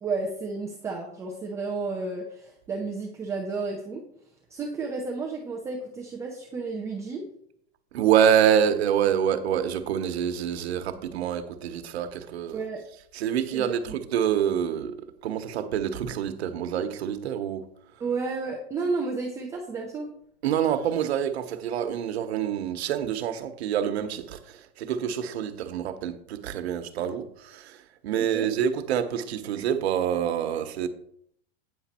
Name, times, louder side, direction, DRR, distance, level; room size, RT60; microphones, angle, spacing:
voice 1, 0.0-4.0 4.5-7.2 12.5-12.8 13.5-14.0 18.0-20.1 28.2-28.5, right 4 dB, 10° right, 0.5 m, -32 dB
voice 2, 7.9-12.6 13.1-15.0 15.2-17.7 20.4-27.8 28.0-30.9, right 9 dB, 85° right, 1.1 m, -26 dB
9.1 x 6.1 x 4.3 m
supercardioid pair, 170°, 31 cm